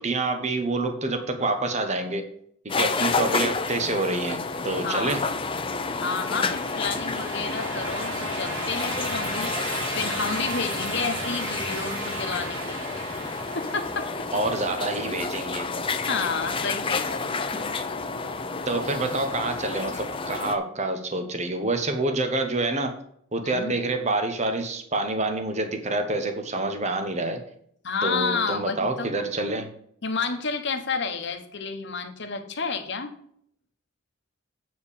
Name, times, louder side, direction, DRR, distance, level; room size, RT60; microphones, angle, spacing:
voice 1, 0.0-2.3 2.6-5.2 14.3-15.7 18.7-22.9 23.3-27.4 28.0-29.7, right 2 dB, 35° right, 6 dB, 1.1 m, -27 dB
sound 1, 2.7-20.6, left 4 dB, 25° left, 0.6 m, -30 dB
voice 2, 4.8-5.2 6.0-9.5 9.9-12.9 13.5-14.1 16.1-17.2 23.4-23.7 27.8-29.1 30.0-33.1, left 4 dB, 55° left, 6 dB, 1.2 m, -30 dB
sound 2, 5.8-14.7, right 2 dB, 85° right, 1.6 m, -35 dB
8.3 x 4.7 x 7.2 m, 0.66 s
head